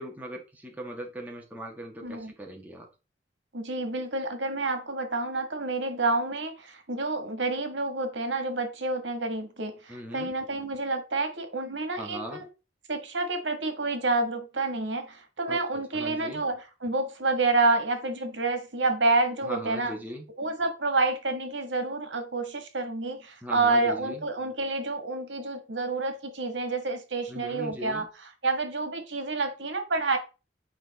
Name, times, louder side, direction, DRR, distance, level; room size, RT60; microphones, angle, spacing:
voice 1, 0.0-2.9 9.9-10.3 12.0-12.4 15.5-15.6 15.9-16.4 19.4-20.2 23.4-24.2 27.3-28.1, equal, 10° right, 0 dB, 1.4 m, -39 dB
voice 2, 2.0-2.3 3.5-12.5 12.9-19.9 20.4-30.2, right 3 dB, 90° right, 7 dB, 1.5 m, -29 dB
8.7 x 4.4 x 4.1 m, 0.31 s
head